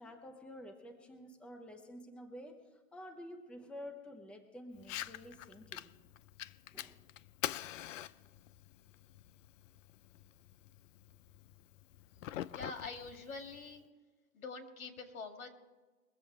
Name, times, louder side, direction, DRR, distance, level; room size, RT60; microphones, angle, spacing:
voice 1, 0.0-5.9 6.7-7.0, left 1 dB, 5° left, 6 dB, 0.8 m, -50 dB
Fire, 4.8-13.8, left 12 dB, 65° left, 0.6 m, -46 dB
voice 2, 12.5-13.8 14.3-15.5, left 4 dB, 80° left, 5 dB, 2.3 m, -45 dB
22.5 x 7.6 x 4.7 m, 1.3 s
hypercardioid pair, 135°, 41 cm